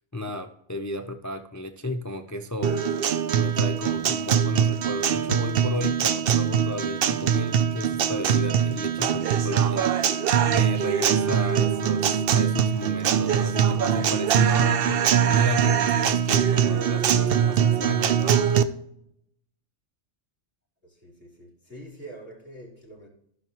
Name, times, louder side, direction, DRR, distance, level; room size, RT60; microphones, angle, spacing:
voice 1, 0.1-2.8 3.4-9.9 10.5-18.5, left 1 dB, 25° left, 7 dB, 0.4 m, -33 dB
Guitar, 2.6-18.6, right 8 dB, 60° right, 0.7 m, -22 dB
voice 2, 20.8-23.1, right 1 dB, 10° right, -6 dB, 3.8 m, -45 dB
15.5 x 5.9 x 3.0 m, 0.74 s
omnidirectional pair, 1.3 m